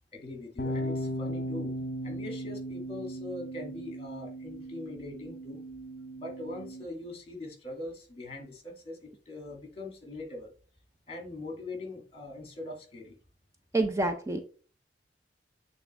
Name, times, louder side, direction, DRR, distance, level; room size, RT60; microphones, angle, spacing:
voice 1, 0.1-1.7 2.0-5.6 6.2-10.5 11.1-13.2, left 2 dB, 35° left, 2 dB, 2.1 m, -41 dB
sound 1, 0.6-6.8, equal, 60° left, 0.8 m, -37 dB
voice 2, 13.7-14.4, right 2 dB, 15° right, 6 dB, 0.5 m, -27 dB
8.3 x 3.6 x 3.3 m, 0.40 s
head